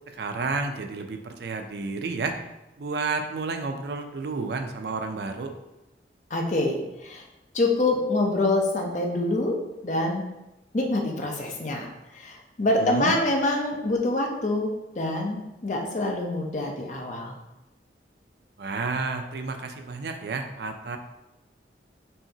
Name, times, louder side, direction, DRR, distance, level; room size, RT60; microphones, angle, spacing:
voice 1, 0.1-2.4 2.8-5.6 12.8-13.1 18.6-21.0, right 4 dB, 65° right, 6 dB, 0.4 m, -31 dB
voice 2, 6.3-7.2 7.5-10.3 10.7-11.9 12.1-17.4, left 2 dB, 45° left, 1 dB, 0.6 m, -26 dB
5.5 x 2.8 x 2.8 m, 0.95 s
head